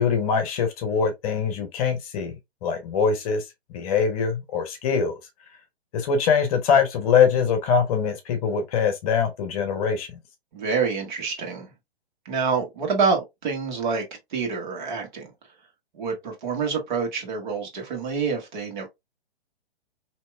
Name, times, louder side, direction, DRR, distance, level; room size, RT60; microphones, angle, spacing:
voice 1, 0.0-2.4 2.6-3.4 3.7-5.1 5.9-10.1, left 6 dB, 35° left, 0.9 m, -23 dB
voice 2, 10.5-11.7 12.2-14.0 14.3-15.3 15.9-18.9, right 5 dB, 45° right, 1.6 m, -27 dB
4.3 x 2.9 x 2.3 m
figure-of-eight pair, 125°, 32 cm